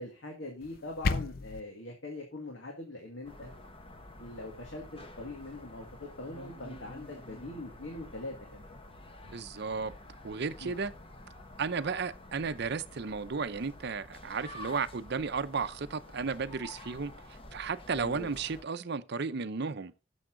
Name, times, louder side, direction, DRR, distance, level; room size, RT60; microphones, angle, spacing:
voice 1, 0.0-3.5 4.2-8.7 10.6-10.7 17.9-18.3, left 2 dB, 75° left, 2.0 m, -42 dB
sound 1, 0.6-1.6, left 3 dB, 50° left, 0.5 m, -32 dB
sound 2, 3.2-18.6, left 1 dB, 30° left, 1.1 m, -49 dB
voice 2, 9.3-9.9 10.2-10.9 11.6-19.9, right 5 dB, 55° right, 0.6 m, -34 dB
11.0 x 7.1 x 3.8 m
head